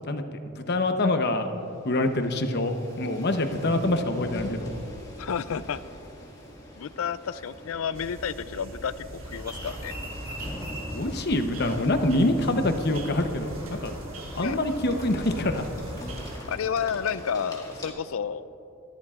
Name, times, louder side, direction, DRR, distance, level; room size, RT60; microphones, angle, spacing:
voice 1, 0.6-1.5 1.8-4.7 10.9-13.9 14.3-15.7, left 1 dB, 50° left, 7 dB, 0.9 m, -25 dB
sound 1, 1.1-17.9, left 1 dB, 20° left, 2.1 m, -44 dB
voice 2, 5.2-5.8 6.8-9.9 14.4-14.6 16.5-18.5, left 7 dB, 85° left, 15 dB, 0.4 m, -31 dB
sound 2, 7.9-16.4, right 1 dB, 80° right, 1.4 m, -43 dB
sound 3, 9.3-16.5, equal, 20° right, 2.7 m, -41 dB
25.0 x 13.0 x 2.5 m, 2.9 s
head